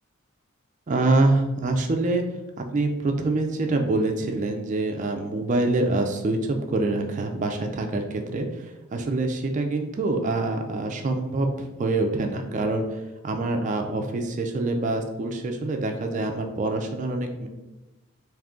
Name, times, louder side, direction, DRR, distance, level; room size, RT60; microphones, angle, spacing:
voice 1, 0.9-2.2 2.6-17.5, right 2 dB, 35° right, 4 dB, 0.3 m, -25 dB
3.6 x 2.6 x 3.6 m, 1.0 s
head